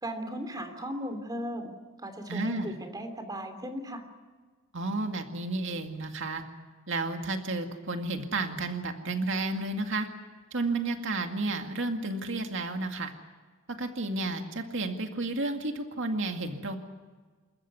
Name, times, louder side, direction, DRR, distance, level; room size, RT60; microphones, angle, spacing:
voice 1, 0.0-1.7 2.0-4.0, equal, 20° right, 7 dB, 3.0 m, -36 dB
voice 2, 2.3-2.7 4.7-6.4 6.9-10.1 10.5-13.1 13.7-16.8, right 2 dB, 65° right, 5 dB, 2.1 m, -32 dB
28.5 x 14.0 x 9.5 m, 1.4 s
head